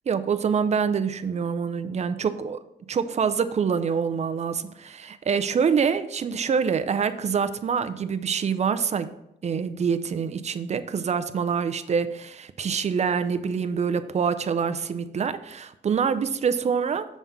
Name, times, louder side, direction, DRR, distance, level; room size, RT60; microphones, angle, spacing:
voice 1, 0.1-2.6 2.9-9.1 9.4-17.1, right 6 dB, 40° right, 11 dB, 0.4 m, -25 dB
7.1 x 3.6 x 5.4 m, 0.84 s
cardioid pair, 120°, 18 cm